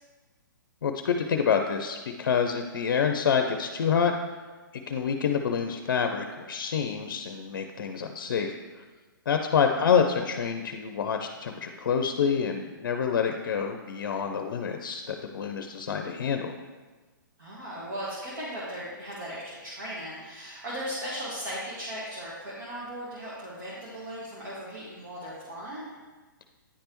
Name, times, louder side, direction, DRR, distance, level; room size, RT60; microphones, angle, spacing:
voice 1, 0.8-4.1 4.9-8.8 9.3-16.5, left 7 dB, 70° left, 5 dB, 0.5 m, -27 dB
voice 2, 17.4-25.9, equal, 65° right, -7 dB, 1.6 m, -37 dB
9.8 x 3.3 x 3.0 m, 1.3 s
hypercardioid pair, 140°, 11 cm